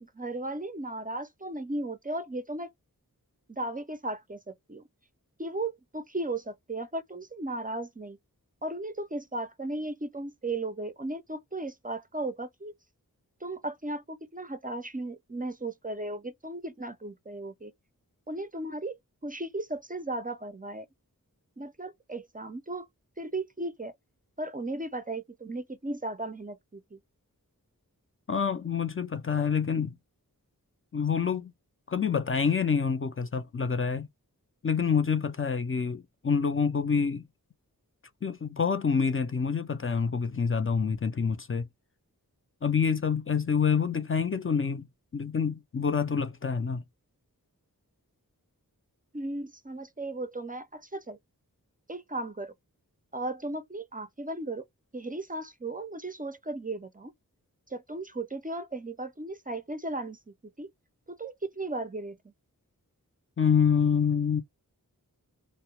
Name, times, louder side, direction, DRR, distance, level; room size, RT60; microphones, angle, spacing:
voice 1, 0.0-2.7 3.5-4.8 5.4-8.2 8.6-12.7 13.4-17.7 18.3-20.9 21.6-22.9 23.2-23.9 24.4-27.0 49.1-51.2 51.9-52.5 53.1-54.6 54.9-57.1 57.7-60.7 61.1-62.2, right 2 dB, 25° right, 0.4 m, -36 dB
voice 2, 28.3-30.0 30.9-31.5 31.9-34.1 34.6-37.2 38.2-41.7 42.6-44.9 45.1-46.8 63.4-64.4, left 6 dB, 40° left, 0.4 m, -27 dB
2.1 x 2.0 x 2.9 m
wide cardioid pair, 50°, 35 cm